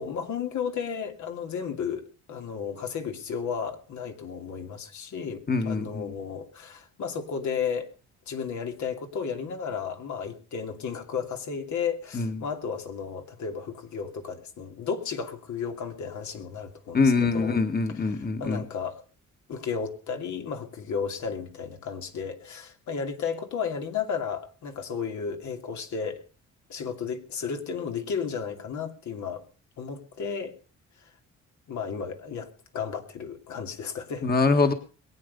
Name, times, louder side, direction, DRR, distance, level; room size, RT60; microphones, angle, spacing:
voice 1, 0.0-7.9 8.3-17.6 17.9-19.0 19.5-26.2 26.7-29.4 29.8-30.5 31.0-31.1 31.7-34.3, left 6 dB, 70° left, 5 dB, 2.7 m, -33 dB
voice 2, 5.5-6.1 12.2-12.3 16.9-18.6 34.2-34.7, left 4 dB, 30° left, 7 dB, 1.8 m, -24 dB
22.0 x 8.7 x 5.4 m, 0.37 s
cardioid pair, 90°, 30 cm